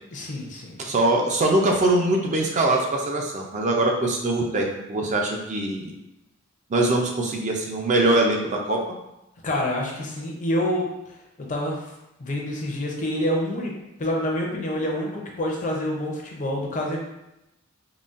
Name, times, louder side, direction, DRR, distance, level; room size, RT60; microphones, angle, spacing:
voice 1, 0.1-0.8 9.4-11.2 11.5-11.9 12.2-13.7 14.0-17.0, left 1 dB, 35° left, -1 dB, 0.5 m, -27 dB
voice 2, 0.8-5.9 6.7-8.8, right 2 dB, 35° right, 1 dB, 0.4 m, -22 dB
3.8 x 2.1 x 2.4 m, 0.89 s
head